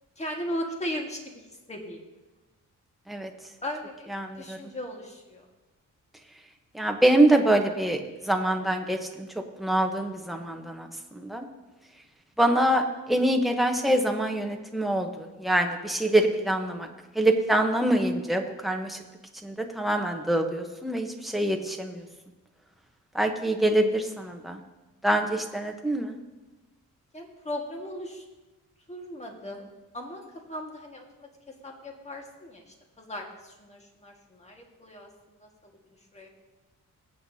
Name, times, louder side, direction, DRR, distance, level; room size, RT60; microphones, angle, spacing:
voice 1, 0.2-1.4 1.7-2.0 3.6-4.1 4.4-5.5 27.1-28.2 28.9-29.7 29.9-30.2 30.5-31.3 31.6-35.1 35.4-35.7 36.1-36.3, left 1 dB, 20° left, 1 dB, 1.7 m, -37 dB
voice 2, 4.1-4.6 6.7-8.0 8.3-9.3 9.6-11.5 12.4-16.9 17.1-19.0 19.4-22.0 23.1-24.6 25.0-26.1, right 1 dB, ahead, 3 dB, 1.0 m, -25 dB
21.0 x 8.2 x 2.8 m, 1.1 s
wide cardioid pair, 135°, 31 cm